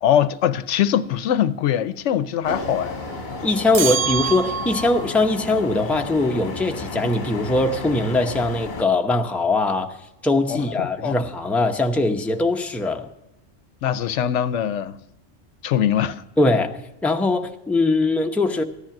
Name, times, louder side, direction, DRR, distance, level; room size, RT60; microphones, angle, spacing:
voice 1, 0.0-3.0 10.5-11.2 13.8-14.9 15.6-16.2, left 10 dB, 80° left, 0.9 m, -22 dB
sound 1, 2.4-8.8, left 3 dB, 45° left, 1.3 m, -33 dB
sound 2, 2.5-8.6, equal, 70° right, 4.6 m, -41 dB
voice 2, 3.4-10.0 10.2-13.1 16.4-18.6, left 2 dB, ahead, 0.7 m, -21 dB
sound 3, 3.7-5.1, right 7 dB, 50° right, 0.4 m, -25 dB
14.5 x 10.5 x 5.8 m
omnidirectional pair, 1.2 m